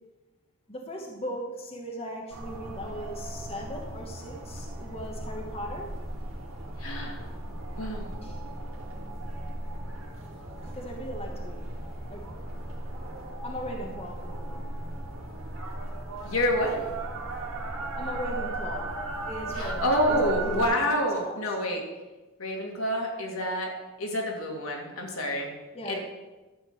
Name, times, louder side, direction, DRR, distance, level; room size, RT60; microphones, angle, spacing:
voice 1, 0.7-5.9 8.2-8.4 10.7-12.3 13.4-14.7 17.9-18.9 19.3-20.9 21.2-21.4 25.7-26.0, equal, 30° left, 0 dB, 1.3 m, -38 dB
sound 1, 2.3-20.7, right 2 dB, 65° right, 2.0 m, -36 dB
voice 2, 6.8-7.2 7.8-8.1 16.2-16.8 19.5-21.8 22.4-23.7 24.0-25.5 25.9-26.0, equal, 75° left, 0 dB, 2.3 m, -28 dB
12.0 x 4.5 x 8.1 m, 1.2 s
head